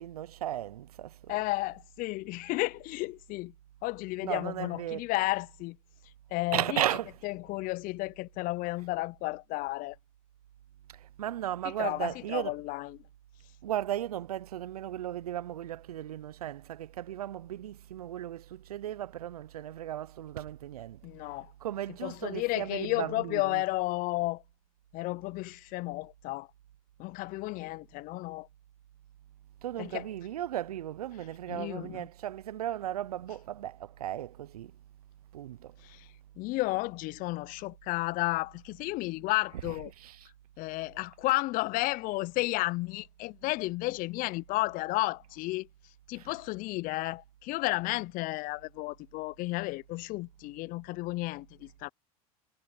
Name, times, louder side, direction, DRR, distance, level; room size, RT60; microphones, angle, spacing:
voice 1, 0.0-1.4 4.2-5.0 6.5-7.2 10.9-12.5 13.6-21.0 21.6-23.6 29.6-34.7 35.3-35.7 40.0-40.3 46.1-46.3, right 12 dB, 85° right, 0.7 m, -36 dB
voice 2, 1.3-3.5 3.8-5.8 6.3-6.8 7.2-10.0 11.8-13.0 21.0-21.5 22.0-24.4 24.9-26.5 27.0-28.5 29.8-30.1 31.5-32.1 35.8-36.1 36.4-39.9 40.6-45.7 46.1-51.9, left 21 dB, 50° left, 0.7 m, -32 dB
hypercardioid pair, 90°, 19 cm